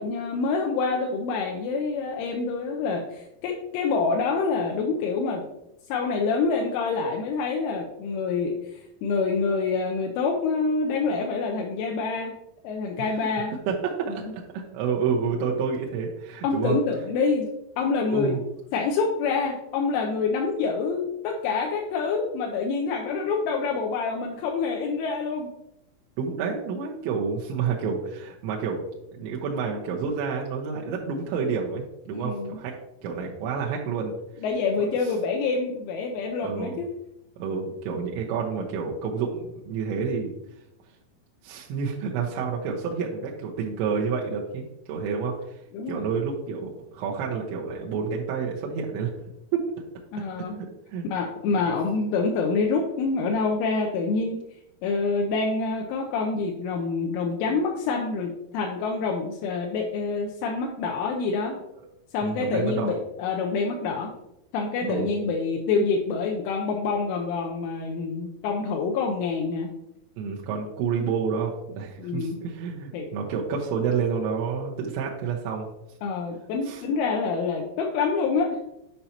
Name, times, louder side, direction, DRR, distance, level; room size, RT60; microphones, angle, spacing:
voice 1, 0.0-5.4 5.9-12.3 12.6-13.5 16.4-17.5 17.8-18.3 18.7-25.5 32.1-32.6 34.4-36.9 45.7-46.1 50.1-50.6 51.1-54.4 54.8-61.6 62.1-64.1 64.5-69.7 72.0-72.4 72.9-73.1 76.0-78.5, left 4 dB, 80° left, 0 dB, 3.1 m, -26 dB
voice 2, 13.7-16.8 18.0-18.4 26.2-28.8 29.1-32.7 33.0-34.1 36.4-36.8 37.4-40.3 41.4-45.6 45.9-49.1 49.5-49.6 50.6-51.1 51.6-51.7 62.2-62.9 64.8-65.1 70.2-75.7 76.7-76.8, right 6 dB, 80° right, -2 dB, 2.8 m, -29 dB
8.9 x 5.3 x 2.8 m, 0.86 s
omnidirectional pair, 5.7 m